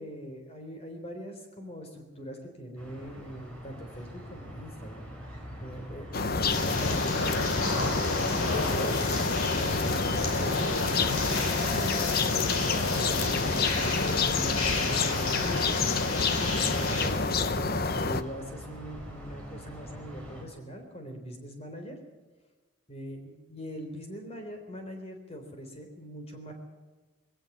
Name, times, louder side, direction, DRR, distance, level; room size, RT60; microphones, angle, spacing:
voice 1, 0.0-9.0 9.5-14.0 14.3-22.0 22.9-26.5, equal, 30° left, 4 dB, 3.7 m, -42 dB
sound 1, 2.8-20.4, equal, 5° left, 4.9 m, -44 dB
sound 2, 6.1-18.2, left 4 dB, 45° left, 0.8 m, -28 dB
sound 3, 6.5-17.1, left 3 dB, 90° left, 4.6 m, -33 dB
20.0 x 17.5 x 7.4 m, 1.3 s
head